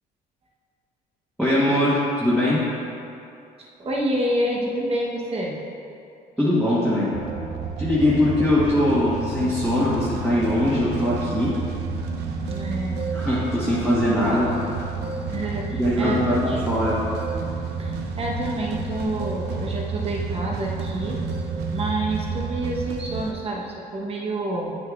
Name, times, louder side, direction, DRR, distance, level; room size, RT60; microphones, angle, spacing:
voice 1, 1.4-2.6 6.4-7.1 7.8-11.6 13.1-14.5 15.7-17.0, left 1 dB, 5° right, -11 dB, 1.5 m, -21 dB
voice 2, 3.6-5.6 9.4-9.5 12.5-13.0 15.3-16.7 17.8-21.2 21.7-24.8, right 1 dB, 35° right, -2 dB, 1.2 m, -28 dB
sound 1, 7.1-23.3, right 4 dB, 80° right, 0.7 m, -30 dB
9.1 x 6.5 x 2.5 m, 2.7 s
cardioid pair, 110°, 17 cm